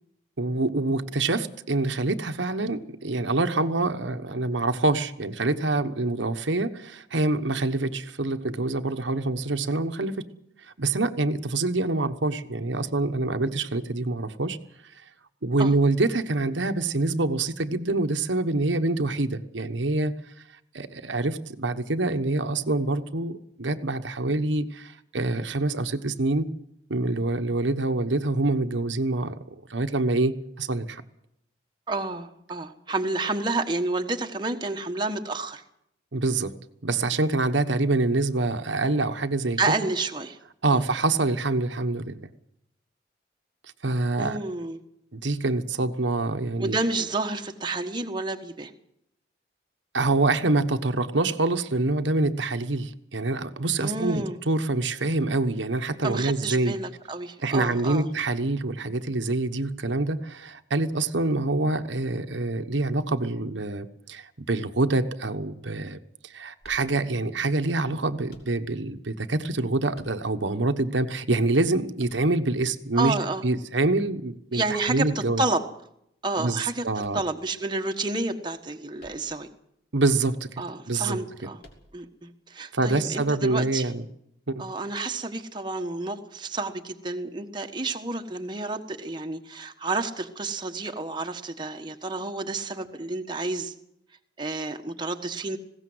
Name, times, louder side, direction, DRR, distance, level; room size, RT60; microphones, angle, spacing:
voice 1, 0.4-10.3 10.8-14.6 15.4-20.2 20.7-26.5 26.9-29.3 29.7-31.0 36.1-36.6 36.8-39.7 40.6-42.2 43.8-44.4 45.1-46.8 49.9-56.7 57.4-73.1 73.4-75.4 76.4-77.2 79.9-80.6 80.9-81.2 82.7-84.0 84.5-84.7, right 2 dB, 80° right, 7 dB, 1.2 m, -26 dB
voice 2, 31.9-35.6 39.6-40.4 40.7-40.8 44.2-44.8 46.6-48.7 53.8-54.4 56.0-58.1 73.0-73.4 74.5-75.1 75.4-75.6 76.2-76.8 77.1-79.5 80.6-81.6 81.9-83.9 84.6-93.7 94.4-95.6, right 3 dB, 25° right, 4 dB, 1.3 m, -30 dB
sound 1, 66.6-67.4 68.3-69.0 69.9-70.6 72.0-72.8 74.8-75.4 77.0-77.9 79.0-79.5 79.8-79.9 81.6-82.2, equal, 55° left, 3.4 m, -53 dB
20.0 x 17.0 x 7.9 m, 0.76 s
head